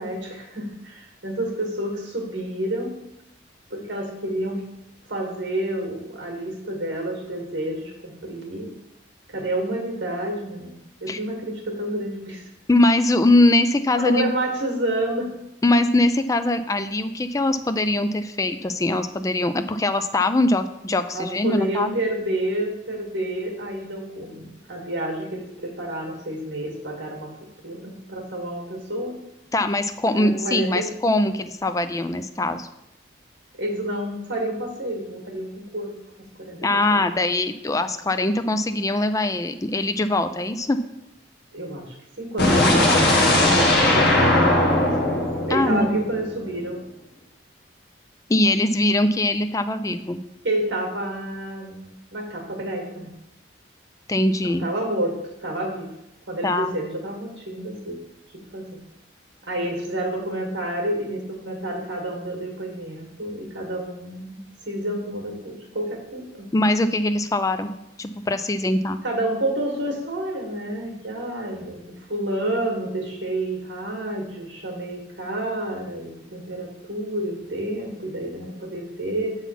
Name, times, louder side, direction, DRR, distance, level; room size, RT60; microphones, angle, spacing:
voice 1, 0.0-2.9 3.7-4.6 5.1-8.7 9.3-12.4 14.0-15.3 21.1-27.3 27.6-29.2 30.1-30.9 33.6-35.9 36.4-37.0 41.5-46.8 50.4-53.1 54.4-55.9 56.3-58.0 58.3-58.8 59.4-66.5 69.0-79.4, right 1 dB, 60° right, 1 dB, 1.9 m, -29 dB
voice 2, 12.7-14.3 15.6-21.9 29.5-32.7 36.6-40.8 45.5-45.9 48.3-50.2 54.1-54.7 56.4-56.7 66.5-69.0, left 2 dB, 15° left, 9 dB, 0.3 m, -22 dB
sound 1, 42.4-46.4, left 1 dB, 55° left, 1.3 m, -19 dB
7.1 x 4.1 x 5.7 m, 0.85 s
head